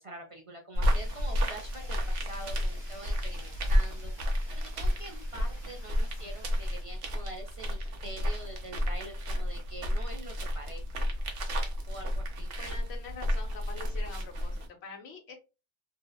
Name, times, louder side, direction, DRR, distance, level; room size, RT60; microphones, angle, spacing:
voice 1, 0.0-4.1 4.5-11.1 11.9-12.5, right 2 dB, 45° right, 2 dB, 0.4 m, -45 dB
sound 1, 0.7-14.7, equal, 65° right, 0.9 m, -31 dB
Fire, 0.8-6.8, right 1 dB, 25° right, 1.2 m, -54 dB
voice 2, 12.6-15.3, left 4 dB, 90° left, 3 dB, 1.0 m, -45 dB
2.8 x 2.1 x 2.2 m, 0.29 s
omnidirectional pair, 1.1 m